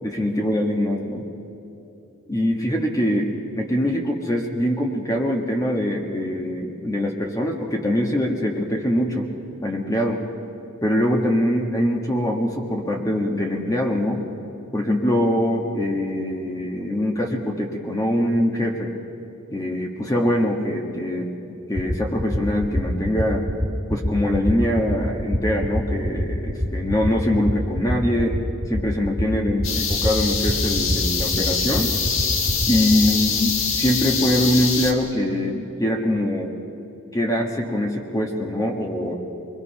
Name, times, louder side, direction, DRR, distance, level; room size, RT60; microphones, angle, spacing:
voice 1, 0.0-1.2 2.3-9.3 9.6-10.3 10.8-14.3 14.7-18.9 19.5-23.4 23.9-28.4 28.7-31.9 32.7-36.5 37.1-39.2, left 1 dB, 15° left, 0 dB, 1.4 m, -23 dB
sound 1, 21.7-33.1, equal, 10° right, 1.7 m, -23 dB
sound 2, 29.6-34.9, left 5 dB, 80° left, 1.7 m, -24 dB
26.0 x 21.5 x 5.7 m, 2.8 s
head